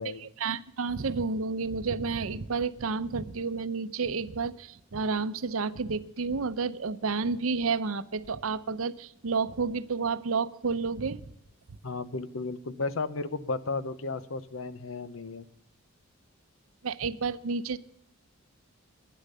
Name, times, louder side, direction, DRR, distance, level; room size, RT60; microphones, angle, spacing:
voice 1, 0.4-11.2 16.8-17.8, right 4 dB, 80° right, 15 dB, 0.7 m, -30 dB
voice 2, 11.8-15.5, left 3 dB, 70° left, 15 dB, 0.8 m, -34 dB
11.5 x 10.5 x 6.6 m, 0.79 s
head